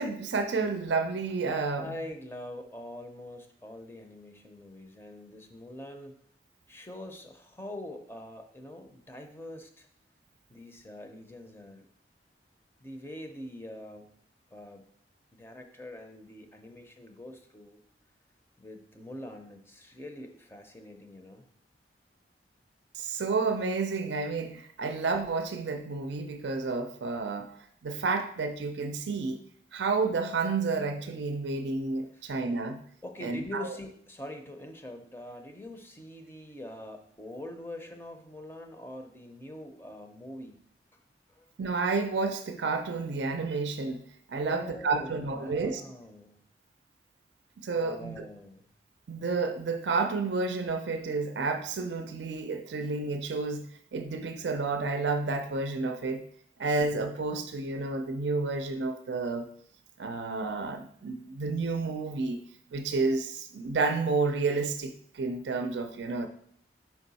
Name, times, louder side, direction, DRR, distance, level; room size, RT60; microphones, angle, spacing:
voice 1, 0.0-1.9 22.9-27.5 27.8-29.4 29.7-32.8 33.2-33.7 41.6-44.0 44.3-45.8 47.6-48.3 49.1-53.7 53.9-56.2 56.6-59.5 60.0-62.4 62.7-66.3, right 3 dB, 80° right, 7 dB, 0.5 m, -30 dB
voice 2, 1.8-6.2 6.7-9.9 10.5-11.9 12.8-14.1 14.5-14.8 15.3-17.8 18.6-21.4 32.1-32.5 33.0-40.6 40.9-41.0 41.3-41.5 44.4-46.4 47.8-48.7, left 1 dB, 15° left, 5 dB, 0.5 m, -44 dB
5.3 x 4.6 x 4.0 m, 0.65 s
head